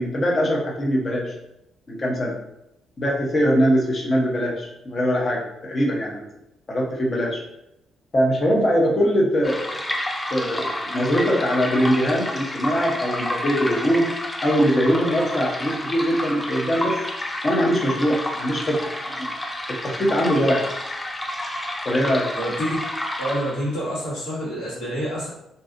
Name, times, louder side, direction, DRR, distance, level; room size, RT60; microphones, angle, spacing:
voice 1, 0.0-1.3 1.9-2.3 3.0-6.2 6.7-7.4 8.1-9.8 10.3-14.1 14.4-17.0 17.4-19.3 19.7-20.6 21.8-22.3, equal, 35° left, -2 dB, 0.7 m, -22 dB
sound 1, 9.4-23.8, left 1 dB, 10° left, 0.3 m, -30 dB
voice 2, 22.3-22.8 23.2-25.3, equal, 85° left, -8 dB, 1.4 m, -27 dB
2.6 x 2.3 x 2.5 m, 0.85 s
cardioid pair, 90°, 0 cm